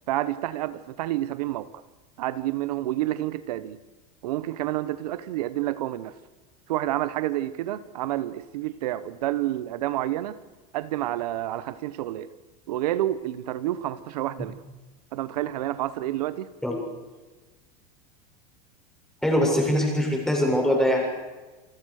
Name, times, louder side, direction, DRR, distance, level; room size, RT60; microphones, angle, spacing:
voice 1, 0.1-1.7 2.2-3.8 4.2-6.1 6.7-10.4 10.7-12.3 12.7-14.6 15.1-16.5, right 14 dB, 80° right, 14 dB, 1.3 m, -29 dB
voice 2, 19.2-21.1, equal, ahead, 0 dB, 7.1 m, -22 dB
28.5 x 21.0 x 6.7 m, 1.2 s
supercardioid pair, 150°, 20 cm